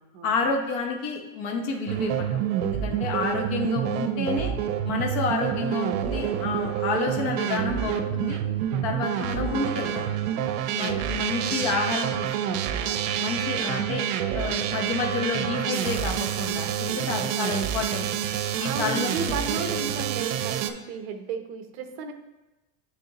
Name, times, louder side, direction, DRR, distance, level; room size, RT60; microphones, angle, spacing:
voice 1, 0.2-4.5 4.8-8.4 8.8-10.3 10.7-12.9 13.2-14.0 14.3-18.2 18.6-19.8, left 4 dB, 50° left, 1 dB, 1.0 m, -30 dB
sound 1, 1.9-20.7, right 10 dB, 90° right, 0.6 m, -28 dB
voice 2, 16.9-17.3 18.6-22.1, right 5 dB, 50° right, 6 dB, 0.7 m, -34 dB
9.9 x 3.6 x 2.9 m, 1.0 s
supercardioid pair, 180°, 39 cm